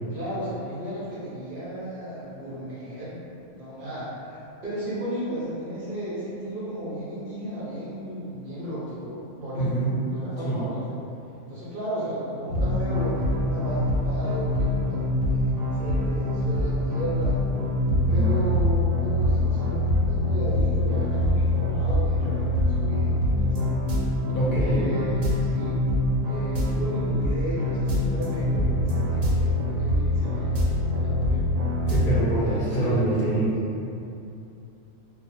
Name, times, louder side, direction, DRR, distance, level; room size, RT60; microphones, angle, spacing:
voice 1, 0.1-9.7 10.1-10.9 11.5-17.4 18.1-23.7 24.6-25.8 26.2-30.6 30.9-31.4 32.4-33.0, right 1 dB, 55° right, -10 dB, 0.7 m, -34 dB
voice 2, 9.6-9.9 10.4-10.6 18.1-18.4 24.3-24.8 31.9-33.6, right 2 dB, 45° left, -9 dB, 0.7 m, -25 dB
sound 1, 12.5-32.2, left 1 dB, 90° right, 1.0 m, -24 dB
2.3 x 2.1 x 2.9 m, 2.8 s
omnidirectional pair, 1.4 m